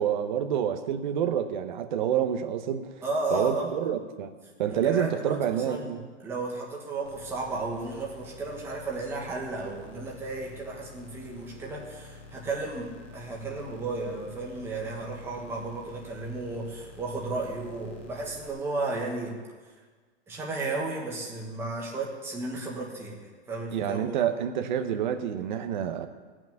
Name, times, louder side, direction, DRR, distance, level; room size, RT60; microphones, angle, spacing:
voice 1, 0.0-2.9 3.3-4.3 4.6-6.0 23.7-26.1, right 9 dB, 40° right, 6 dB, 1.0 m, -28 dB
voice 2, 3.0-4.0 4.7-19.4 20.3-24.3, right 2 dB, 5° right, -3 dB, 1.4 m, -34 dB
sound 1, 7.0-18.5, left 2 dB, 10° left, 0.4 m, -48 dB
17.0 x 6.2 x 9.0 m, 1.4 s
supercardioid pair, 180°, 35 cm